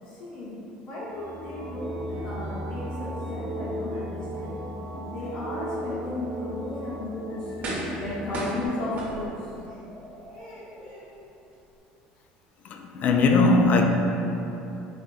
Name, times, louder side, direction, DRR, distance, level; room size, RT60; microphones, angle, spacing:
voice 1, 0.0-4.6 5.0-7.7 8.0-11.1, left 1 dB, 80° left, -11 dB, 1.1 m, -35 dB
sound 1, 1.1-8.7, equal, 70° right, 0.4 m, -36 dB
sound 2, 6.7-6.8 7.6-8.1 8.3-9.6 10.1-10.2, right 1 dB, 45° right, 0.8 m, -33 dB
voice 2, 12.8-13.9, left 3 dB, 50° left, 3 dB, 0.3 m, -19 dB
4.8 x 2.2 x 2.5 m, 2.9 s
supercardioid pair, 100°, 3 cm